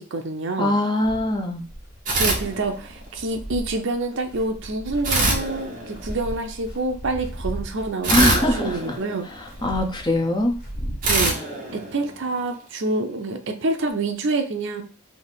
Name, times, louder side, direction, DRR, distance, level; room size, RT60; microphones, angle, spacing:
voice 1, 0.0-0.8 2.2-9.3 11.1-11.4 11.7-14.8, right 2 dB, 60° right, 5 dB, 0.7 m, -27 dB
voice 2, 0.6-1.6 8.1-9.0 9.4-10.5, left 1 dB, 20° left, 2 dB, 0.7 m, -22 dB
sound 1, 1.0-11.3, equal, 50° left, 1.4 m, -36 dB
sound 2, 2.0-3.2 5.0-6.4 8.0-9.7 11.0-12.6, right 2 dB, 40° right, 1.1 m, -25 dB
3.5 x 2.7 x 4.0 m, 0.38 s
head